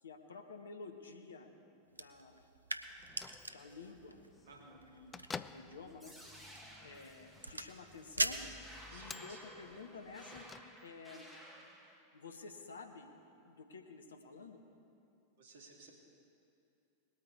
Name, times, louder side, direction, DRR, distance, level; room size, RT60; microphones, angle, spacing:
voice 1, 0.0-1.5 1.9-2.4 3.5-4.2 4.6-5.2 5.5-6.1 6.8-8.4 8.9-10.5 10.8-11.3 12.1-13.1 13.4-14.6, left 4 dB, 70° left, 6 dB, 1.1 m, -51 dB
sound 1, 1.9-9.3, right 2 dB, 85° right, 0.5 m, -43 dB
Bell / Microwave oven, 2.9-11.2, left 5 dB, 15° left, 0.3 m, -53 dB
voice 2, 4.5-4.8 8.9-9.4 15.4-16.0, right 4 dB, 60° right, 0 dB, 2.2 m, -57 dB
sound 2, 6.0-12.0, equal, ahead, 1.7 m, -55 dB
20.0 x 8.8 x 4.8 m, 2.6 s
figure-of-eight pair, 90°, 0 cm